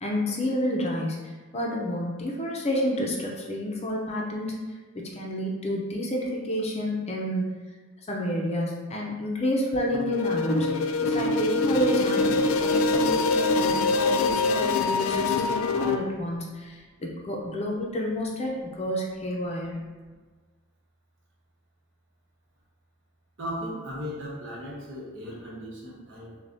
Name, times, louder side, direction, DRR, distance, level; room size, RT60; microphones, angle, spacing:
voice 1, 0.0-4.5 4.9-7.5 8.1-19.8, equal, 30° left, -2 dB, 0.6 m, -30 dB
sound 1, 9.9-16.0, left 3 dB, 70° left, 0.4 m, -24 dB
voice 2, 23.4-26.4, equal, 60° right, -5 dB, 1.2 m, -37 dB
6.7 x 2.3 x 2.7 m, 1.4 s
head